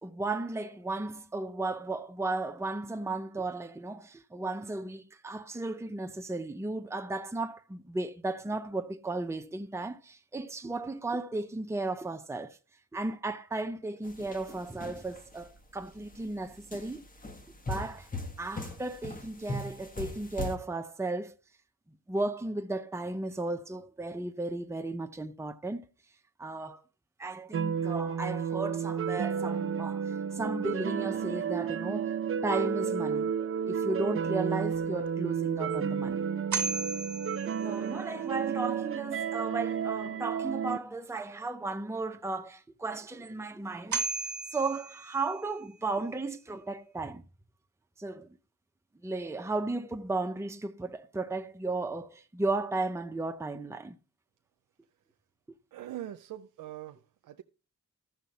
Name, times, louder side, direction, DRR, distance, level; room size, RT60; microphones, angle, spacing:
voice 1, 0.0-12.6 12.9-17.0 17.7-18.1 18.4-21.3 22.1-25.9 26.4-26.8 27.2-32.1 32.4-33.3 33.7-36.3 37.6-47.2 48.0-48.3 49.0-54.0, right 2 dB, 10° right, 0.7 m, -35 dB
sound 1, 14.0-15.4 16.0-16.2 16.7-20.6, left 2 dB, 25° left, 1.7 m, -39 dB
sound 2, 27.5-40.8, right 7 dB, 45° right, 0.5 m, -32 dB
sound 3, 35.1-35.2 35.7-35.8 36.5-38.1 43.2-43.3 43.9-45.6, right 4 dB, 65° right, 1.6 m, -35 dB
voice 2, 55.7-57.4, right 12 dB, 90° right, 0.6 m, -42 dB
13.5 x 6.8 x 4.1 m
cardioid pair, 85°, 32 cm